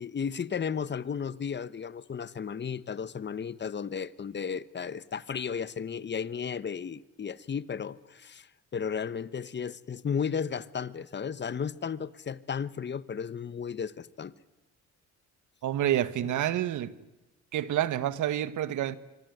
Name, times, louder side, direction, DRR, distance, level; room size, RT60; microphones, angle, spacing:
voice 1, 0.0-8.5 8.7-14.3 16.2-16.4, left 6 dB, 35° left, 1.2 m, -34 dB
voice 2, 15.6-16.9 17.5-19.0, right 12 dB, 75° right, 1.5 m, -28 dB
25.5 x 24.0 x 9.4 m
cardioid pair, 90°, 30 cm